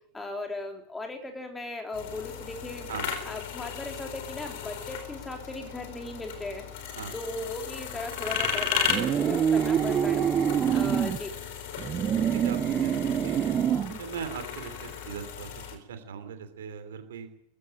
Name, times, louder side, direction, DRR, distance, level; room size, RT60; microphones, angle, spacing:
voice 1, 0.1-2.9 3.3-10.2 10.7-11.3, left 2 dB, 10° left, 3 dB, 3.7 m, -37 dB
sound 1, 1.9-15.7, left 7 dB, 50° left, 4.0 m, -35 dB
sound 2, 8.9-11.2 11.8-14.0, right 9 dB, 25° right, 0.8 m, -25 dB
voice 2, 12.0-13.5 13.9-17.3, right 7 dB, 60° right, 9 dB, 3.0 m, -40 dB
19.0 x 15.5 x 8.9 m, 0.75 s
figure-of-eight pair, 90°, 0 cm